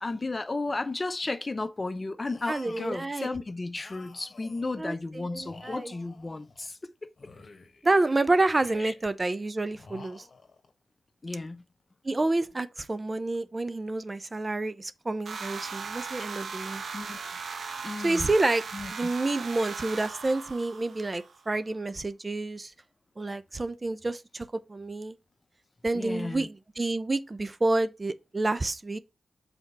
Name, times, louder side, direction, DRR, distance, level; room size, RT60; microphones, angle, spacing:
voice 1, 0.0-7.3 8.8-8.9 11.2-11.6 16.9-17.2 17.8-18.3 18.7-18.9 25.9-26.5, left 3 dB, 35° left, 0.8 m, -34 dB
sound 1, 2.3-3.1 3.8-4.9 5.4-6.7 7.2-7.9 8.5-9.2 9.7-10.7, left 4 dB, 50° left, 1.5 m, -51 dB
voice 2, 2.5-3.3 4.8-5.9 7.8-10.3 12.0-16.8 18.0-18.6 18.9-22.7 23.2-25.2 25.8-29.0, right 2 dB, 35° right, 0.8 m, -29 dB
sound 2, 15.3-21.4, right 5 dB, 65° right, 1.1 m, -38 dB
5.8 x 4.4 x 5.6 m
supercardioid pair, 40°, 0 cm